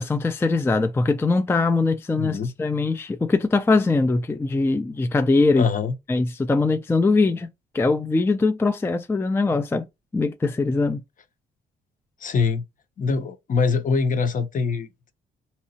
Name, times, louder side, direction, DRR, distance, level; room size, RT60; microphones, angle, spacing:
voice 1, 0.0-5.7 6.1-7.5 7.7-9.9 10.1-11.0, left 3 dB, 10° left, 0.3 m, -21 dB
voice 2, 2.1-2.5 5.6-6.0 12.2-12.6 13.0-15.1, left 5 dB, 40° left, 0.7 m, -24 dB
3.8 x 2.8 x 2.7 m
cardioid pair, 90°, 20 cm